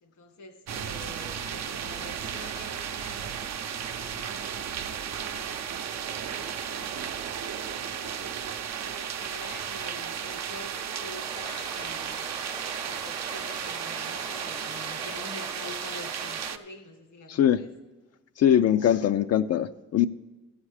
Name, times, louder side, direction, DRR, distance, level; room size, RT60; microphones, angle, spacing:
voice 1, 0.0-8.4 8.8-12.4 12.8-17.7, left 2 dB, 85° left, 5 dB, 2.0 m, -47 dB
sound 1, 0.7-16.6, right 8 dB, 60° right, 0.7 m, -34 dB
sound 2, 11.2-16.5, right 2 dB, 15° right, 0.7 m, -41 dB
voice 2, 17.3-17.6 18.4-20.1, left 10 dB, 55° left, 9 dB, 0.4 m, -22 dB
13.5 x 7.3 x 4.9 m, 1.1 s
cardioid pair, 90°, 30 cm